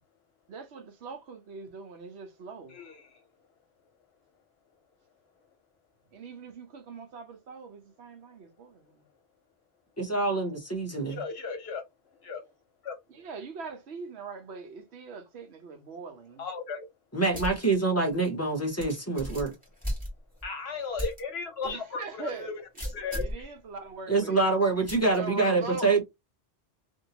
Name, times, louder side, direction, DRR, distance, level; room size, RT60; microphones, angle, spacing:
voice 1, 0.5-2.8 6.1-9.0 13.1-16.4 21.6-22.5 23.1-24.4 25.2-25.9, right 5 dB, 80° right, 1.0 m, -41 dB
voice 2, 2.7-3.2 11.1-11.8 12.2-12.4 12.8-13.0 16.4-16.8 20.4-22.5 22.8-23.4, left 5 dB, 70° left, 1.2 m, -36 dB
voice 3, 10.0-11.2 17.1-19.5 24.1-26.1, right 3 dB, 15° left, 0.7 m, -26 dB
sound 1, 17.3-17.7 18.1-18.2 18.8-20.5 21.0-21.2 21.6-21.7 22.7-23.4 24.9-25.2, equal, 10° right, 1.7 m, -35 dB
2.7 x 2.7 x 2.7 m
omnidirectional pair, 1.1 m